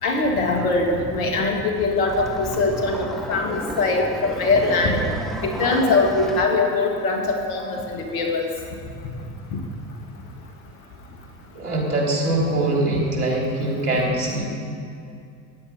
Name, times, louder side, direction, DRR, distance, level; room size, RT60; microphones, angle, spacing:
voice 1, 0.0-5.0 5.4-8.5, left 3 dB, 70° left, 1 dB, 2.5 m, -22 dB
sound 1, 1.8-6.5, equal, ahead, 1.4 m, -33 dB
voice 2, 11.5-14.4, right 2 dB, 85° right, -2 dB, 3.3 m, -23 dB
14.5 x 9.8 x 5.4 m, 2.4 s
hypercardioid pair, 75°, 44 cm